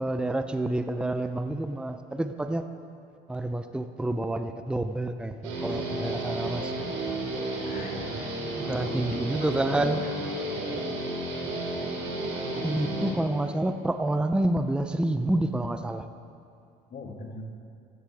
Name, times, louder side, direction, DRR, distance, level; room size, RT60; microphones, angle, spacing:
voice 1, 0.0-2.6 3.3-6.7 8.7-10.0 12.6-16.0, right 1 dB, 5° right, 8 dB, 0.6 m, -28 dB
Guitar, 5.4-13.1, right 2 dB, 75° right, 3.1 m, -32 dB
voice 2, 7.6-8.3 8.7-10.1 16.9-17.4, left 3 dB, 45° left, 3 dB, 1.7 m, -41 dB
14.5 x 13.5 x 3.5 m, 2.4 s
supercardioid pair, 75°, 20 cm